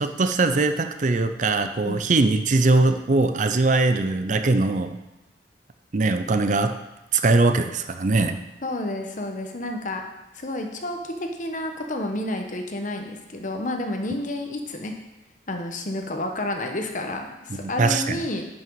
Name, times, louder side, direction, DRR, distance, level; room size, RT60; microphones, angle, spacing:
voice 1, 0.0-5.0 5.9-6.7 7.1-8.4 17.5-18.2, right 3 dB, 45° right, 9 dB, 0.5 m, -21 dB
voice 2, 8.6-10.0 10.3-14.9 15.5-18.5, left 1 dB, 45° left, 4 dB, 1.0 m, -30 dB
11.0 x 6.0 x 4.7 m, 1.0 s
head